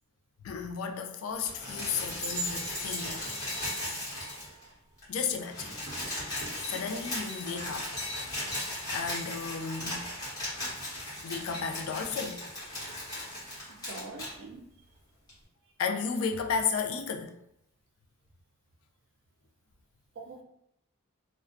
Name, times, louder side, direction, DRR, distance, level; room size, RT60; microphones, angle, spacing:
voice 1, 0.4-3.3 5.1-5.7 6.7-7.9 8.9-10.1 11.2-12.4 15.8-17.4, left 6 dB, 75° left, 0.3 m, -33 dB
sound 1, 1.4-4.7 5.0-5.1 5.3-14.3 15.3-15.4, left 1 dB, 20° left, 1.0 m, -37 dB
voice 2, 6.7-7.1 13.7-14.6 20.2-20.4, right 3 dB, 60° right, 0.4 m, -45 dB
2.4 x 2.1 x 2.5 m
head